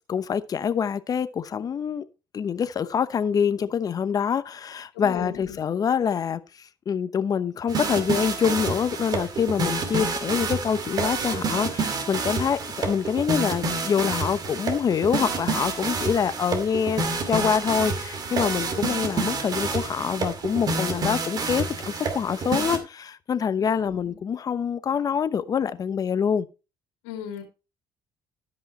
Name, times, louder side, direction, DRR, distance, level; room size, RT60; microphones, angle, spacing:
voice 1, 0.1-2.0 2.3-26.5, left 7 dB, 40° left, 0.9 m, -25 dB
voice 2, 4.9-5.6 23.6-24.2 27.0-27.4, left 8 dB, 85° left, 2.7 m, -37 dB
sound 1, 7.7-22.8, right 4 dB, 45° right, 2.3 m, -28 dB
13.0 x 5.5 x 4.2 m
supercardioid pair, 80°, 9 cm